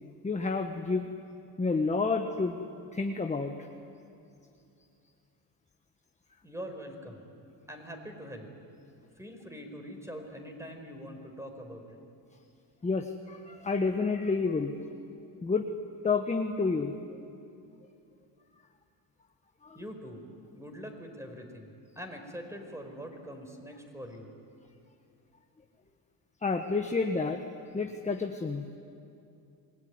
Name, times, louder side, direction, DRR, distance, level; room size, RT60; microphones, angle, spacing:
voice 1, 0.2-1.1 1.6-2.6 2.9-3.7 12.8-14.8 15.4-15.7 16.0-17.2 19.6-19.8 26.4-27.4 27.7-28.7, left 4 dB, 15° left, 4 dB, 1.4 m, -29 dB
voice 2, 6.4-7.3 7.7-8.5 9.2-12.0 19.7-24.3, equal, 5° right, 4 dB, 4.7 m, -43 dB
27.5 x 20.5 x 9.6 m, 2.6 s
cardioid pair, 105°, 43 cm